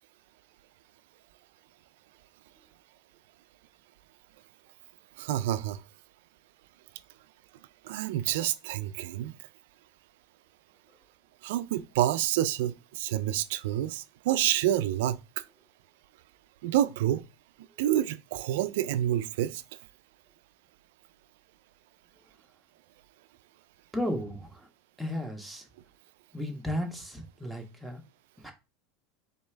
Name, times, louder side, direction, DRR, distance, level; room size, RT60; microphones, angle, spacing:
voice 1, 5.2-5.8 7.8-9.3 11.4-15.5 16.6-17.2 17.8-19.6, right 12 dB, 75° right, 0.4 m, -28 dB
voice 2, 23.9-24.7 25.0-25.7 26.3-28.0 28.4-28.5, left 1 dB, ahead, 1.3 m, -34 dB
4.4 x 3.4 x 3.3 m
hypercardioid pair, 100°, 0 cm